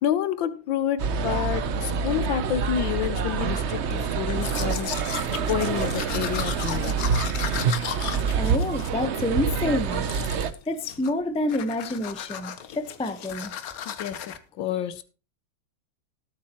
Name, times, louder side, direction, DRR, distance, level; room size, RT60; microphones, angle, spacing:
voice 1, 0.0-5.0 5.5-7.0 13.9-15.0, left 10 dB, 80° left, 1.5 m, -29 dB
sound 1, 1.0-10.5, right 6 dB, 60° right, 0.7 m, -26 dB
Domestic sounds home sounds, 4.3-9.5 9.9-10.6 10.8-11.2 11.5-14.4, left 9 dB, 60° left, 1.1 m, -36 dB
voice 2, 8.4-10.0 10.7-13.5, left 1 dB, 5° left, 0.5 m, -28 dB
18.5 x 8.7 x 3.0 m
omnidirectional pair, 2.0 m